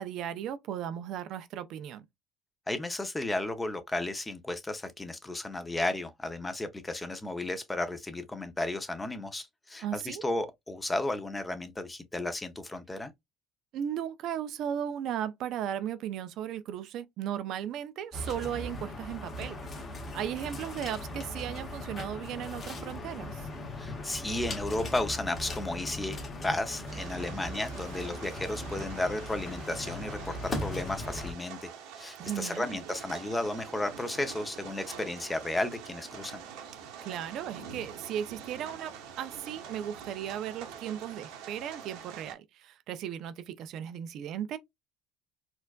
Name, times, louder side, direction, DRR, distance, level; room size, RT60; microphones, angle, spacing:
voice 1, 0.0-2.1 9.8-10.2 13.7-19.8 20.1-23.5 32.2-32.8 37.0-44.6, right 10 dB, 65° right, 0.5 m, -36 dB
voice 2, 2.7-13.1 23.8-26.2 26.4-31.7 32.0-36.4, left 2 dB, 15° left, 0.6 m, -33 dB
sound 1, 18.1-31.3, left 1 dB, 30° left, 1.3 m, -39 dB
sound 2, 26.9-42.3, right 7 dB, 85° right, 1.0 m, -46 dB
4.4 x 2.4 x 2.3 m
cardioid pair, 120°, 0 cm